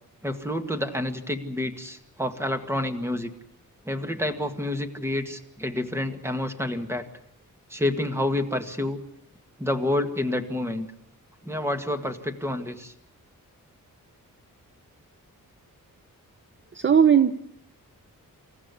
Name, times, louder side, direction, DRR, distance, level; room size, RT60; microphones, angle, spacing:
voice 1, 0.2-3.3 3.9-7.0 7.7-9.0 9.6-10.9 11.4-12.9, left 1 dB, 5° right, 6 dB, 1.9 m, -28 dB
voice 2, 16.7-17.3, right 8 dB, 35° right, 10 dB, 0.8 m, -17 dB
27.5 x 15.0 x 9.7 m, 0.73 s
wide cardioid pair, 165°, 34 cm